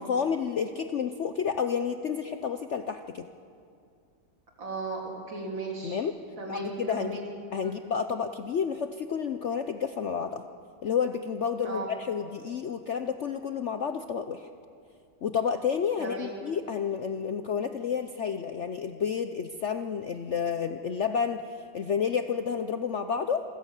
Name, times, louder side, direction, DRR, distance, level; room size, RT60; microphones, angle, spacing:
voice 1, 0.0-3.3 5.8-6.1 6.5-7.2 7.5-10.5 10.8-14.5 15.2-23.4, left 7 dB, 65° left, 8 dB, 0.7 m, -30 dB
voice 2, 4.6-6.0 6.4-7.3 7.6-7.8 11.6-11.9 16.0-16.4, right 3 dB, 90° right, -1 dB, 4.1 m, -36 dB
27.0 x 14.5 x 8.2 m, 2.4 s
omnidirectional pair, 2.0 m